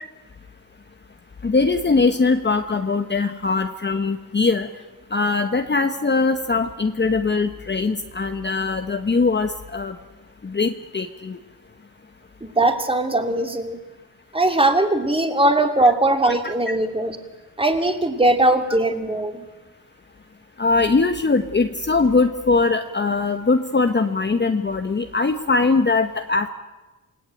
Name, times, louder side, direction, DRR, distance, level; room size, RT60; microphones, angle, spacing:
voice 1, 1.4-4.7 5.1-9.9 10.4-11.4 20.6-26.5, left 3 dB, 25° left, 7 dB, 1.2 m, -21 dB
voice 2, 12.4-13.8 14.3-17.2 17.6-19.5, right 2 dB, 15° right, 5 dB, 2.7 m, -20 dB
27.5 x 18.5 x 9.1 m, 1.2 s
wide cardioid pair, 130°, 39 cm